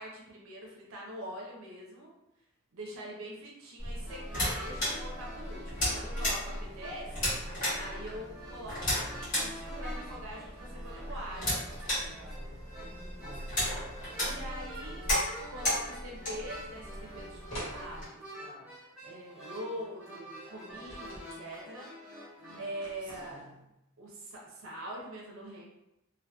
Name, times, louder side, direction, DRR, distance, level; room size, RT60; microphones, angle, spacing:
voice 1, 0.0-2.1 2.7-7.3 7.8-11.6 12.8-13.3 14.2-15.0 15.4-21.9 22.5-23.4 24.0-25.6, right 1 dB, 70° right, -2 dB, 0.5 m, -44 dB
sound 1, 3.8-18.0, left 1 dB, 40° left, 1.1 m, -35 dB
sound 2, 4.1-23.0, equal, ahead, 1.1 m, -47 dB
voice 2, 11.5-12.6 13.2-13.7 22.4-22.6 23.2-23.6, equal, 25° right, -6 dB, 0.8 m, -52 dB
sound 3, 17.5-17.8 20.7-21.3 22.8-23.6, equal, 65° left, 1.1 m, -43 dB
2.7 x 2.2 x 2.2 m, 0.88 s
head